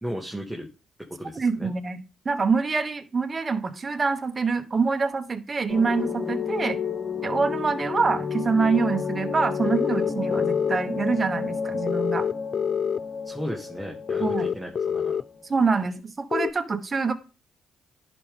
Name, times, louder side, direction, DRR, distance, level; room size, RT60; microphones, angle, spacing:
voice 1, 0.0-0.7 1.2-1.7 13.2-15.2, equal, 5° right, 0 dB, 1.6 m, -35 dB
voice 2, 1.4-2.0 2.2-6.8 7.2-12.2 14.2-14.5 15.5-17.1, right 4 dB, 35° right, 7 dB, 1.1 m, -25 dB
sound 1, 5.7-15.8, left 5 dB, 35° left, 2.6 m, -31 dB
sound 2, 9.6-10.8 11.9-13.0 14.1-15.2 16.3-16.5, left 7 dB, 50° left, 0.3 m, -26 dB
10.5 x 5.1 x 3.7 m, 0.32 s
supercardioid pair, 70°, 0 cm